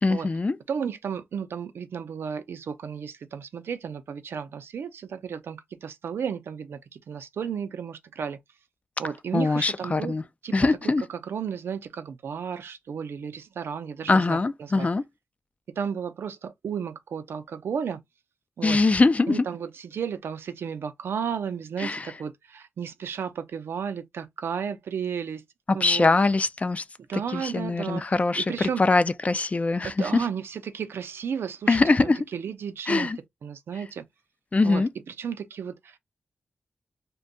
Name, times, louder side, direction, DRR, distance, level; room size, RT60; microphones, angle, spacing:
voice 1, 0.0-0.6 9.3-10.2 10.5-11.0 14.1-15.0 18.6-19.4 21.8-22.1 25.7-26.8 27.1-30.2 31.7-32.2 32.9-33.2 34.5-34.9, left 3 dB, 35° left, 0.4 m, -22 dB
voice 2, 0.7-8.4 9.0-10.2 10.4-10.5 11.1-14.9 15.8-18.0 18.6-18.8 19.3-25.4 25.7-26.1 27.1-28.0 28.4-28.8 29.8-33.1 33.4-34.0 34.6-36.0, right 7 dB, 80° right, 0.5 m, -33 dB
2.6 x 2.2 x 3.7 m
cardioid pair, 50°, 4 cm